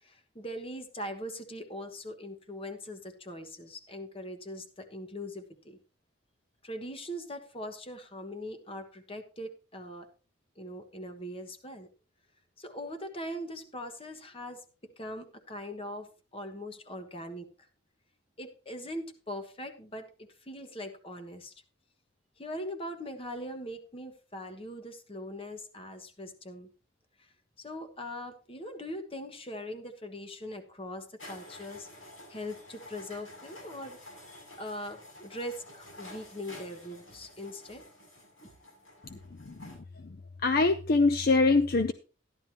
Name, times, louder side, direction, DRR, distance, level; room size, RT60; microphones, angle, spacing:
voice 1, 0.0-5.8 6.6-10.1 10.6-11.9 12.6-14.6 15.0-17.5 18.4-21.5 22.4-26.7 27.6-31.9 32.3-34.0 34.6-37.8, equal, 30° left, 7 dB, 1.3 m, -41 dB
sound 1, 31.2-39.8, left 1 dB, 85° left, 7.6 m, -50 dB
voice 2, 39.5-39.8 40.4-41.9, left 3 dB, 50° left, 10 dB, 0.5 m, -24 dB
13.5 x 11.0 x 3.0 m, 0.34 s
head